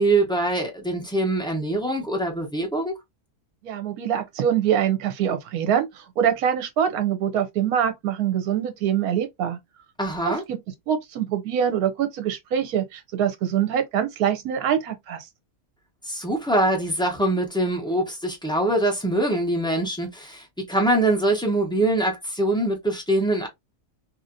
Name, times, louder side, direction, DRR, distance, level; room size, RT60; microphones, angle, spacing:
voice 1, 0.0-2.9 10.0-10.4 16.0-23.5, right 1 dB, 5° left, 0.6 m, -23 dB
voice 2, 3.6-9.6 10.2-10.6 10.9-15.3, right 9 dB, 70° right, 1.2 m, -24 dB
2.8 x 2.8 x 2.5 m
omnidirectional pair, 1.6 m